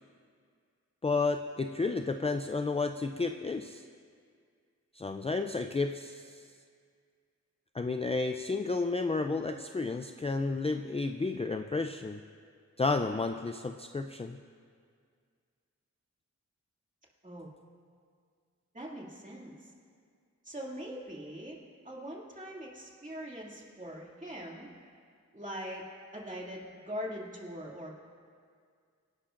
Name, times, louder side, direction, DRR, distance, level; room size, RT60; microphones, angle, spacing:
voice 1, 1.0-3.8 4.9-6.4 7.7-12.2 12.8-14.4, left 3 dB, 20° left, 7 dB, 0.4 m, -32 dB
voice 2, 18.7-19.7 20.4-21.6 21.8-24.7 25.3-25.9 26.1-27.9, equal, 25° right, -3 dB, 2.4 m, -42 dB
24.5 x 11.5 x 2.5 m, 2.1 s
wide cardioid pair, 75°, 30 cm